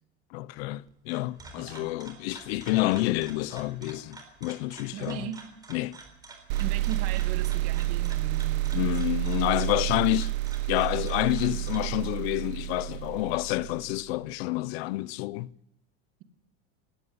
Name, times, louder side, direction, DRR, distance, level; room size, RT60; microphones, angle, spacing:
voice 1, 0.3-5.3 5.7-6.0 8.7-10.3 10.7-15.5, left 18 dB, 65° left, 0.7 m, -28 dB
sound 1, 0.9-12.0, right 3 dB, 10° right, 3.9 m, -49 dB
voice 2, 1.6-1.9 4.9-5.4 6.6-9.0, right 9 dB, 45° right, 2.4 m, -38 dB
sound 2, 6.5-14.0, right 18 dB, 80° right, 1.1 m, -30 dB
19.0 x 15.5 x 9.8 m
cardioid pair, 175°, 34 cm